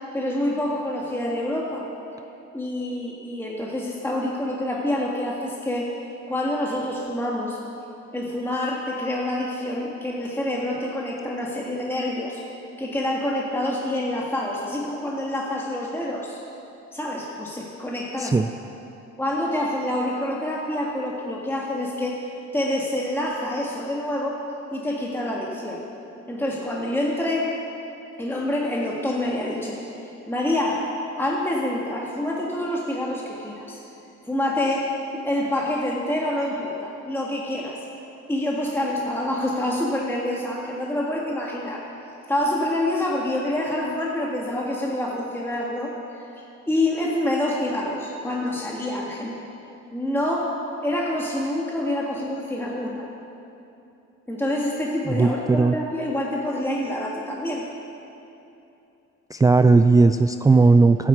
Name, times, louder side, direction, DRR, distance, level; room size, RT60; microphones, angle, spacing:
voice 1, 0.1-1.9 2.5-5.9 6.3-7.6 8.1-16.4 16.9-18.4 19.2-22.2 22.5-24.4 24.7-25.8 26.3-27.6 28.2-29.8 30.3-33.8 34.2-37.8 38.3-41.9 42.3-49.4 49.9-53.1 54.3-57.7, left 1 dB, 5° left, -3 dB, 1.6 m, -27 dB
voice 2, 55.1-55.7 59.3-61.1, right 3 dB, 10° right, 9 dB, 0.3 m, -17 dB
12.0 x 9.9 x 8.1 m, 2.8 s
cardioid pair, 90°, 30 cm